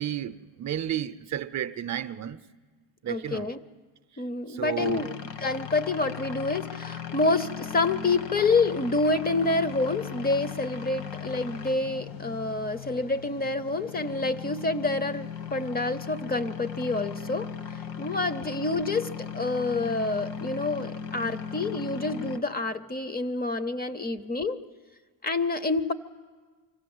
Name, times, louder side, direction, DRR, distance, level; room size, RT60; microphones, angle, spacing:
voice 1, 0.0-2.4 3.0-3.5 4.5-5.1, right 10 dB, 40° right, 0.6 m, -32 dB
voice 2, 3.1-3.6 4.2-5.1 5.4-17.5 18.0-24.6 25.2-25.9, left 3 dB, 20° left, 0.6 m, -28 dB
sound 1, 4.8-22.4, left 7 dB, 75° left, 1.4 m, -38 dB
25.0 x 16.0 x 7.8 m
cardioid pair, 130°, 42 cm